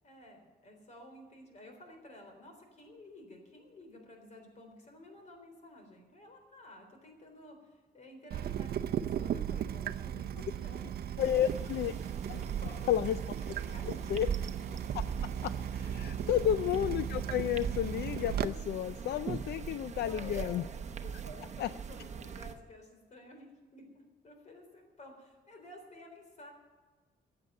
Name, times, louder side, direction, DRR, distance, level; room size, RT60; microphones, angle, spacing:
voice 1, 0.0-11.8 12.4-12.9 13.5-14.2 16.0-16.4 20.0-20.6 21.0-23.5 23.7-26.5, left 1 dB, 45° left, 4 dB, 3.7 m, -52 dB
Water tap faucet / Drip, 8.3-18.5, right 9 dB, 65° right, 0.6 m, -37 dB
sound 1, 9.5-13.7 13.9-14.1 14.4-14.8 15.6-15.7, right 1 dB, ahead, 6.1 m, -66 dB
voice 2, 11.2-11.9 12.3-12.4 12.9-13.2 13.9-14.3 14.9-15.0 15.4-20.6 21.6-21.7, left 11 dB, 75° left, 13 dB, 0.4 m, -31 dB
sound 2, 11.2-22.5, right 7 dB, 40° right, 1.0 m, -41 dB
14.5 x 8.7 x 8.9 m, 1.3 s
wide cardioid pair, 155°, 17 cm